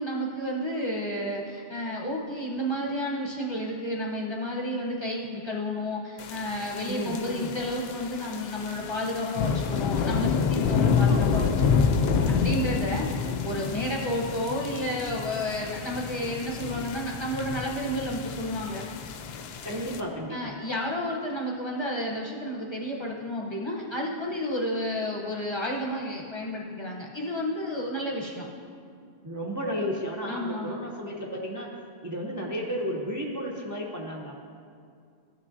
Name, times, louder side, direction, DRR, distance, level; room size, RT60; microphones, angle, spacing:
voice 1, 0.0-11.9 12.3-13.2 13.4-18.8 20.3-28.5 30.3-30.8, equal, 25° left, -3 dB, 0.9 m, -31 dB
sound 1, 6.2-20.0, left 6 dB, 70° left, 0.8 m, -28 dB
voice 2, 6.8-7.5 11.1-11.4 12.9-13.4 19.6-20.5 29.2-31.7 32.0-34.4, equal, 20° right, -2 dB, 0.6 m, -33 dB
14.0 x 6.1 x 2.7 m, 2.3 s
omnidirectional pair, 1.1 m